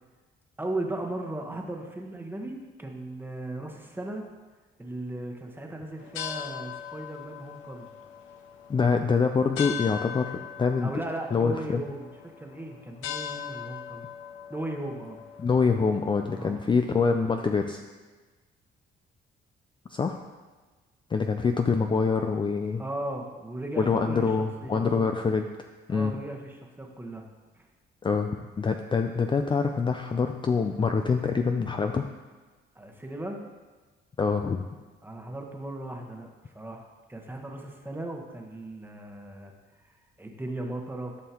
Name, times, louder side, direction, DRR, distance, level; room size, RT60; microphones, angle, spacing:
voice 1, 0.6-4.2 4.8-7.9 10.8-12.1 12.4-14.1 14.5-15.2 16.3-16.6 22.8-25.0 25.9-27.2 27.5-27.7 32.7-33.4 35.0-39.5 39.9-41.2, right 1 dB, 10° right, 2 dB, 1.2 m, -37 dB
sound 1, 6.0-16.5, left 9 dB, 90° left, 0.7 m, -40 dB
voice 2, 8.7-10.9 11.3-11.8 15.4-17.8 19.9-20.2 21.1-22.8 23.8-25.5 25.9-26.2 28.0-28.3 28.6-32.1 34.2-34.6, left 5 dB, 25° left, 6 dB, 0.4 m, -25 dB
12.5 x 5.5 x 2.9 m, 1.3 s
cardioid pair, 90°, 20 cm